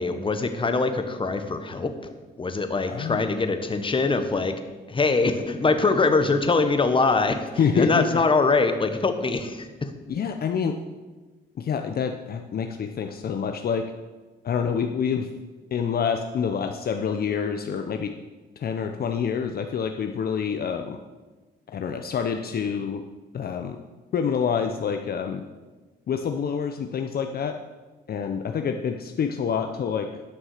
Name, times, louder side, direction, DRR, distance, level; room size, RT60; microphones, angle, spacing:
voice 1, 0.0-1.9 2.4-4.6 4.9-7.5 7.7-9.9, left 3 dB, 25° left, 8 dB, 1.2 m, -23 dB
voice 2, 2.9-3.2 7.6-8.1 10.1-10.8 11.6-13.8 14.4-15.3 15.7-18.1 18.6-21.0 21.7-23.0 23.3-23.8 24.1-25.4 26.1-27.6 28.1-30.1, left 7 dB, 50° left, 6 dB, 0.7 m, -27 dB
11.5 x 6.1 x 6.5 m, 1.3 s
cardioid pair, 90°, 20 cm